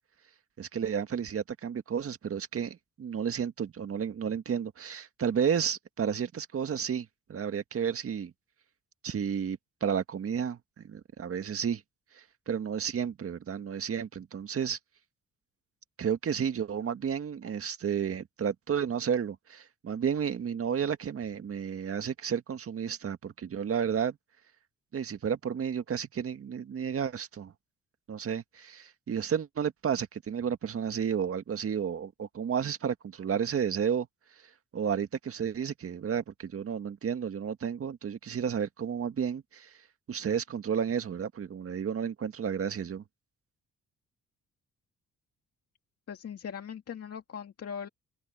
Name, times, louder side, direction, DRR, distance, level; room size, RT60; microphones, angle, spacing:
voice 1, 0.6-8.3 9.0-10.6 10.8-11.8 12.1-14.8 16.0-24.2 24.9-27.5 28.1-34.1 34.7-39.7 40.1-43.0, right 7 dB, 50° right, 1.8 m, -32 dB
voice 2, 46.1-47.9, left 7 dB, 50° left, 2.4 m, -40 dB
open air
cardioid pair, 90°, 30 cm